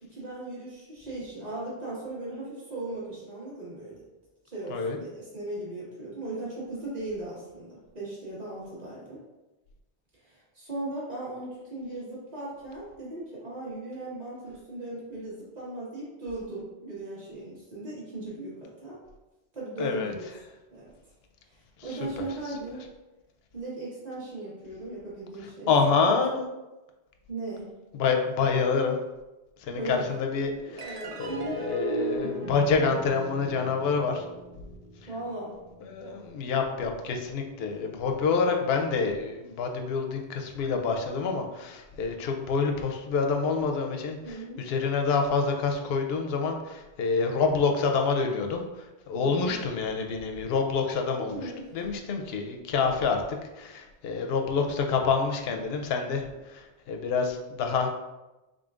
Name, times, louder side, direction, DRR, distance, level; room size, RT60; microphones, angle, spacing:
voice 1, 0.0-4.0 4.5-9.2 10.2-19.0 19.5-20.3 20.7-20.9 21.5-21.6 21.8-22.8 23.5-25.7 26.0-26.1 27.3-27.7 29.8-30.1 30.6-31.7 35.1-35.6 37.7-37.8 44.2-44.6 49.1-49.6 51.2-51.8, right 2 dB, 40° right, -8 dB, 1.6 m, -38 dB
voice 2, 19.8-20.1 25.7-26.4 27.9-29.0 29.6-34.2 35.8-57.9, left 5 dB, 70° left, 3 dB, 0.8 m, -27 dB
sound 1, 30.8-37.5, right 1 dB, 55° right, 0.4 m, -37 dB
3.8 x 3.7 x 2.4 m, 1.0 s
omnidirectional pair, 1.1 m